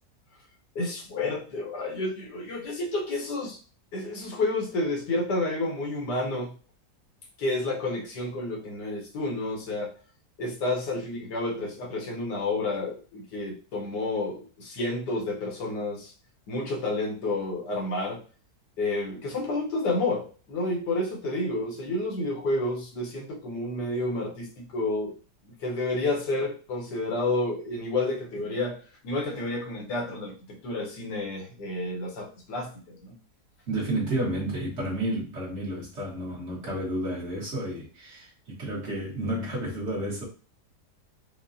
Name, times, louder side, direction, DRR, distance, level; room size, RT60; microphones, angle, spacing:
voice 1, 0.7-3.6 3.9-6.5 7.4-9.9 10.4-16.1 16.5-18.2 18.8-25.1 25.6-33.1, left 2 dB, 90° left, 0 dB, 1.6 m, -30 dB
voice 2, 33.7-40.2, right 1 dB, 45° right, -4 dB, 1.5 m, -31 dB
5.1 x 2.3 x 2.6 m, 0.38 s
omnidirectional pair, 1.7 m